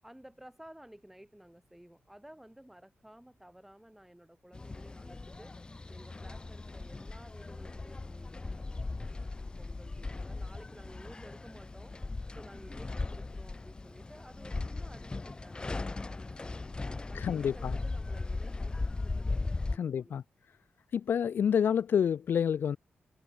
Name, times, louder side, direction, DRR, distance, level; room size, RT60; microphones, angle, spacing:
voice 1, 0.0-5.5 5.9-9.3 9.6-11.9 12.3-15.7 16.0-19.3 19.7-20.2, right 1 dB, 5° right, 7.6 m, -54 dB
sound 1, 4.5-19.8, left 3 dB, 25° left, 1.0 m, -38 dB
voice 2, 17.1-17.8 19.7-20.2 20.9-22.8, left 8 dB, 65° left, 0.5 m, -28 dB
cardioid pair, 105°, 4 cm